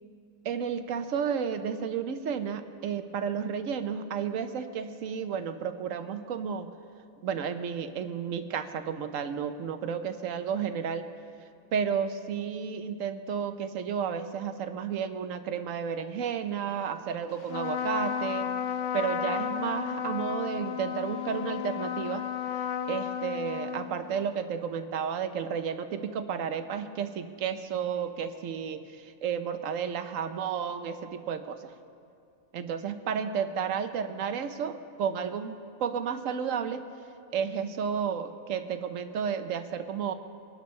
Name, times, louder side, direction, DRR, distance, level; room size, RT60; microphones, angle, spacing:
voice 1, 0.4-6.7 7.2-11.1 11.7-18.5 18.9-22.2 22.6-31.7 32.5-36.8 37.3-40.1, right 7 dB, 80° right, 9 dB, 1.1 m, -32 dB
Trumpet, 17.4-24.3, left 9 dB, 75° left, 1.0 m, -33 dB
22.5 x 11.5 x 3.2 m, 2.4 s
omnidirectional pair, 1.3 m